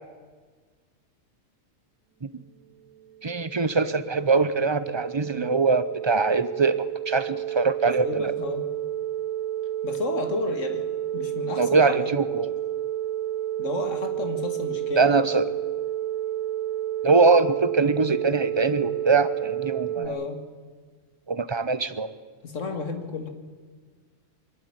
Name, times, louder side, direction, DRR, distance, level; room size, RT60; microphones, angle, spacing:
sound 1, 3.0-20.1, right 12 dB, 85° right, 1.3 m, -31 dB
voice 1, 3.2-8.3 11.6-12.5 15.0-15.5 17.0-20.1 21.3-22.1, right 4 dB, 25° right, 13 dB, 0.7 m, -22 dB
voice 2, 7.8-8.7 9.8-12.2 13.6-15.1 20.0-20.4 22.4-23.3, left 4 dB, 75° left, 7 dB, 2.2 m, -32 dB
23.5 x 12.0 x 9.9 m, 1.5 s
omnidirectional pair, 1.3 m